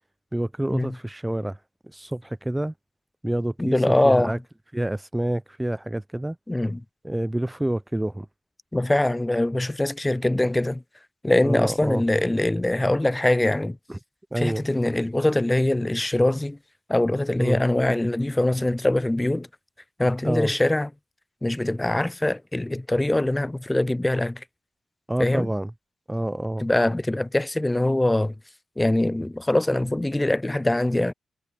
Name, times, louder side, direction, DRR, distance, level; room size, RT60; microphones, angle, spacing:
voice 1, 0.3-1.6 1.9-2.7 3.2-4.4 4.7-6.4 7.0-8.3 11.4-12.0 13.9-14.0 14.3-14.6 17.4-17.6 20.2-20.5 25.1-25.7 26.1-26.7, right 1 dB, 15° right, 0.7 m, -27 dB
voice 2, 3.6-4.4 6.5-6.8 8.7-10.8 11.2-13.8 14.4-16.6 16.9-19.5 20.0-20.9 21.4-24.4 25.2-25.5 26.6-28.3 28.8-31.1, left 1 dB, 15° left, 0.3 m, -23 dB
hypercardioid pair, 40°, 0 cm